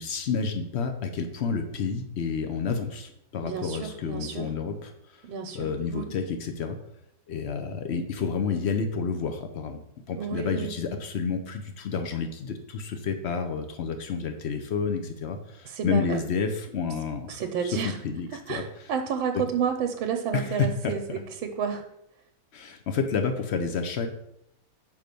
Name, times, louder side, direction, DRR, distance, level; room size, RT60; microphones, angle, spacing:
voice 1, 0.0-5.2 5.5-6.8 7.3-9.8 10.1-18.6 20.3-20.9 22.5-24.1, left 5 dB, 80° left, 6 dB, 0.5 m, -30 dB
voice 2, 3.4-4.5 5.2-6.1 10.1-10.8 15.6-16.2 17.3-18.0 18.3-21.8, right 7 dB, 90° right, 4 dB, 1.5 m, -31 dB
5.9 x 5.1 x 6.7 m, 0.80 s
omnidirectional pair, 2.1 m